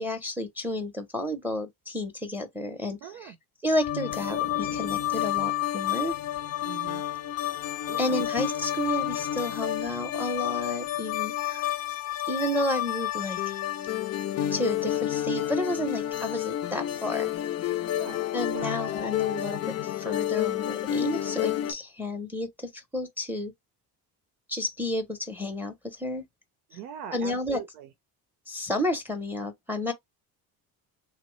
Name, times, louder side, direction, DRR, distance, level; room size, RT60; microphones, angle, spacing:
voice 1, 0.0-3.3 3.6-6.2 8.0-11.7 12.3-13.6 14.5-17.3 18.3-23.5 24.5-26.2 27.1-27.6 28.5-29.9, left 1 dB, 5° right, 0.6 m, -31 dB
voice 2, 3.0-3.4 6.6-7.0 7.9-8.3 18.0-18.2 18.5-18.8 26.7-27.9, right 9 dB, 90° right, 0.6 m, -41 dB
sound 1, 3.8-21.7, left 12 dB, 40° left, 0.4 m, -30 dB
3.0 x 2.1 x 3.0 m
supercardioid pair, 95°, 40 cm